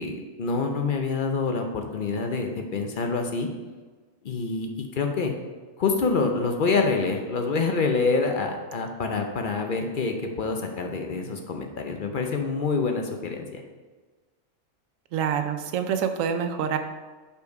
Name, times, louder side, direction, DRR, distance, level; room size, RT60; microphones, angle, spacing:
voice 1, 0.0-3.5 4.2-5.3 5.8-13.6, left 4 dB, 50° left, 4 dB, 0.6 m, -26 dB
voice 2, 15.1-16.8, right 7 dB, 75° right, 7 dB, 1.0 m, -26 dB
5.5 x 4.5 x 4.6 m, 1.3 s
omnidirectional pair, 1.4 m